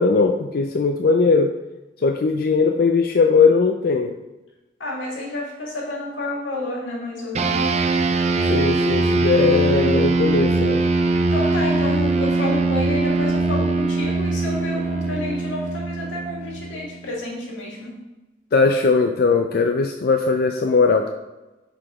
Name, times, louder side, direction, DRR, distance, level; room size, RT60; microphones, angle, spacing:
voice 1, 0.0-1.5 2.0-4.2 8.5-10.8 18.5-21.1, left 4 dB, 55° left, 4 dB, 0.4 m, -19 dB
voice 2, 4.8-7.8 11.3-18.0, left 2 dB, 90° left, -2 dB, 1.9 m, -30 dB
sound 1, 7.3-17.1, right 3 dB, 35° right, 0.5 m, -21 dB
5.9 x 4.9 x 4.8 m, 1.1 s
head